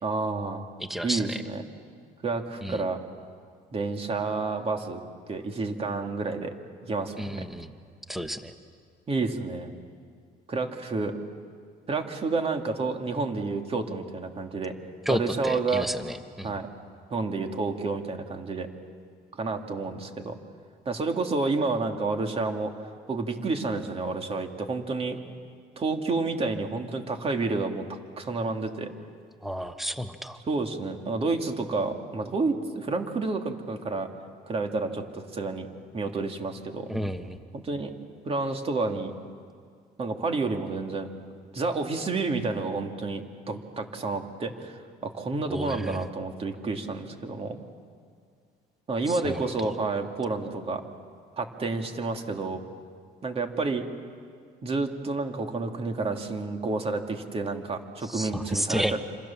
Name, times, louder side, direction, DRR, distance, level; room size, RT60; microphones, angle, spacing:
voice 1, 0.0-0.7 1.0-1.6 2.2-3.0 3.7-5.0 5.3-6.5 6.8-7.4 9.1-9.7 10.5-11.2 11.9-14.7 15.1-15.9 16.4-16.7 17.1-18.7 19.4-20.4 20.9-22.7 23.1-25.2 25.8-28.9 30.5-34.1 34.5-35.7 35.9-36.9 37.5-37.9 38.2-39.1 40.0-41.1 41.5-47.6 48.9-50.8 51.4-52.6 53.2-53.8 54.6-59.0, right 3 dB, 35° right, 4 dB, 2.6 m, -30 dB
voice 2, 0.9-1.4 2.6-2.8 7.2-7.7 8.1-8.5 15.0-16.5 29.4-30.4 36.9-37.4 45.5-46.0 49.2-49.4 58.1-59.0, equal, ahead, 8 dB, 1.3 m, -31 dB
27.0 x 26.5 x 7.3 m, 2.1 s
cardioid pair, 110°, 17 cm